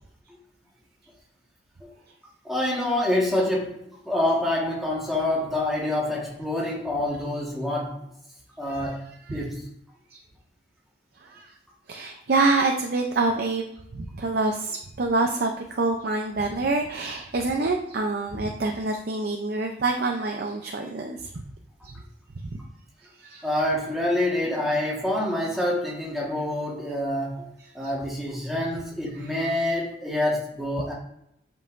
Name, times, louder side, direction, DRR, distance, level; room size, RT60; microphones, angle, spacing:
voice 1, 2.4-8.0 8.6-9.7 23.4-30.9, left 1 dB, ahead, -5 dB, 1.4 m, -27 dB
voice 2, 11.9-13.6 13.9-21.2 21.8-21.9 23.2-23.5 27.8-27.9, right 3 dB, 55° right, 2 dB, 0.5 m, -26 dB
7.5 x 5.5 x 2.6 m, 0.77 s
head